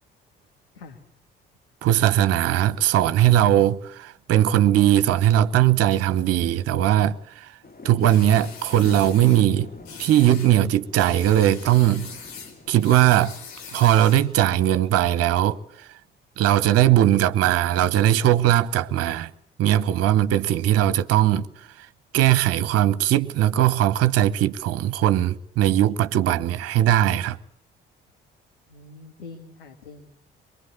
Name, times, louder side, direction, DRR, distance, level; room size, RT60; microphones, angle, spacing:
voice 1, 1.8-7.5 7.8-9.7 10.0-12.1 12.7-13.3 13.7-15.9 16.4-19.3 19.6-21.5 21.8-21.9 22.1-27.4, right 12 dB, 55° right, 0.9 m, -19 dB
sound 1, 7.6-14.4, left 3 dB, 30° left, 2.6 m, -46 dB
sound 2, 8.0-9.5 9.8-10.6 10.9-14.3, left 6 dB, 65° left, 4.4 m, -42 dB
voice 2, 28.7-30.2, left 4 dB, 80° left, 1.6 m, -44 dB
23.5 x 22.5 x 8.4 m
figure-of-eight pair, 45°, 29 cm